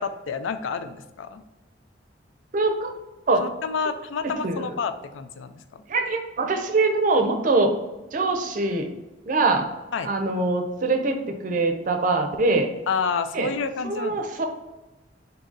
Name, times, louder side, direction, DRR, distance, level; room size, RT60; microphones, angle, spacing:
voice 1, 0.0-1.4 3.4-5.8 9.9-10.1 12.9-14.2, left 5 dB, 90° left, 9 dB, 0.4 m, -29 dB
voice 2, 2.5-2.9 3.3-3.5 4.4-4.7 5.9-7.7 8.1-8.9 9.3-9.7 10.0-12.7 13.3-13.5 13.8-14.5, right 3 dB, 45° right, 5 dB, 0.5 m, -23 dB
3.9 x 2.7 x 3.6 m, 1.1 s
head